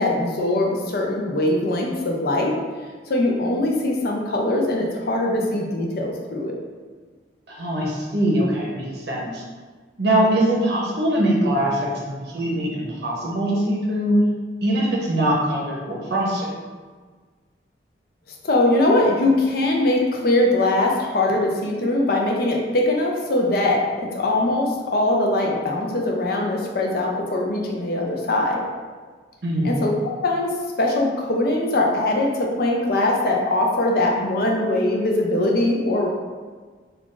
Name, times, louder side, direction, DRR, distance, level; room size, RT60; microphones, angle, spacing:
voice 1, 0.0-2.5 3.1-6.5 18.4-28.6 29.6-29.9 30.2-36.1, left 2 dB, 50° left, 0 dB, 0.5 m, -21 dB
voice 2, 7.5-9.4 10.0-14.2 14.6-16.5 29.4-29.7, right 1 dB, 60° right, -4 dB, 0.7 m, -22 dB
2.5 x 2.3 x 3.7 m, 1.5 s
head